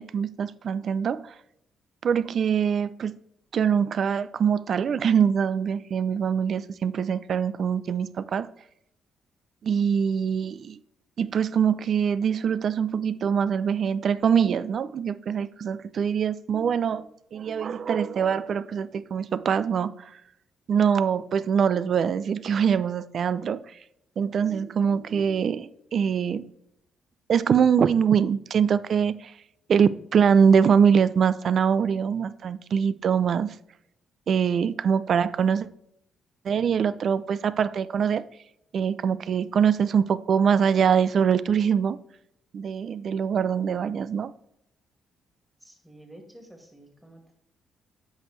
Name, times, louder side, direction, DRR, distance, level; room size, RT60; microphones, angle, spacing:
voice 1, 0.0-1.3 2.0-3.1 3.5-8.5 9.6-10.8 11.2-20.1 20.7-23.6 24.2-26.4 27.3-29.3 29.7-33.5 34.3-35.7 36.4-38.3 38.7-42.0 42.5-44.3, right 7 dB, 55° right, 0.4 m, -23 dB
voice 2, 45.6-47.4, right 1 dB, 5° right, 2.1 m, -50 dB
8.0 x 6.1 x 3.2 m
cardioid pair, 90°, 0 cm